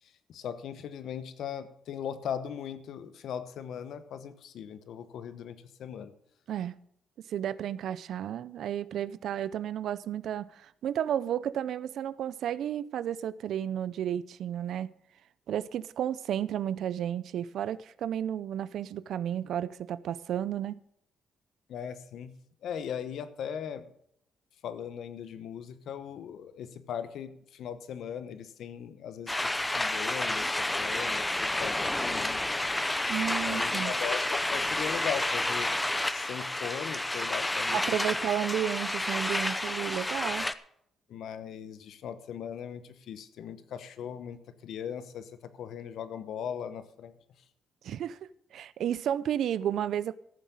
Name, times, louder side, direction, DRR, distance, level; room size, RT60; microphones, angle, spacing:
voice 1, 0.3-6.1 21.7-22.3 22.6-23.9 24.6-29.4 29.7-30.5 30.8-32.4 33.5-35.8 36.1-38.0 41.1-47.1, left 8 dB, 75° left, 1.1 m, -39 dB
voice 2, 7.3-14.9 15.5-20.8 33.1-33.9 37.7-40.5 47.8-50.1, right 10 dB, 70° right, 0.5 m, -32 dB
sound 1, 29.3-40.5, left 1 dB, 10° left, 0.7 m, -30 dB
14.0 x 7.4 x 7.2 m
cardioid pair, 90°, 0 cm